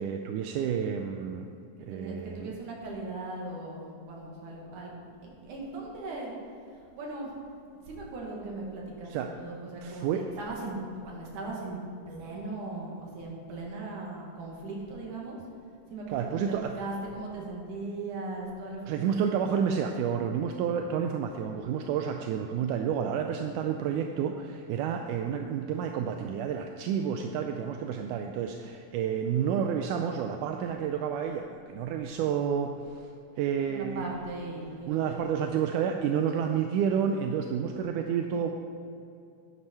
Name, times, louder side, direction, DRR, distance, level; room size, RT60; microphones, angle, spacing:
voice 1, 0.0-1.5 1.8-2.5 9.1-9.3 9.8-10.2 16.1-16.7 18.9-33.1 33.4-34.1 34.9-38.5, right 8 dB, 80° right, 5 dB, 1.9 m, -30 dB
voice 2, 1.9-4.9 5.2-6.3 6.7-7.3 7.8-15.4 15.9-20.0 33.7-35.4 38.3-38.5, right 2 dB, 65° right, -2 dB, 3.2 m, -39 dB
11.5 x 9.7 x 4.5 m, 2.5 s
omnidirectional pair, 4.0 m